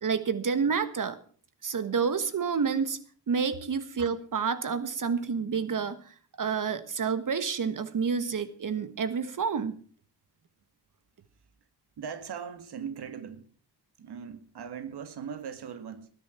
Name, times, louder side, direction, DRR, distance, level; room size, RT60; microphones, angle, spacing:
voice 1, 0.0-1.2 1.6-3.0 3.3-9.8, right 6 dB, 50° right, 1.4 m, -29 dB
voice 2, 12.0-13.5 14.0-16.1, right 7 dB, 75° right, 2.1 m, -39 dB
20.0 x 10.5 x 4.4 m
wide cardioid pair, 135°, 40 cm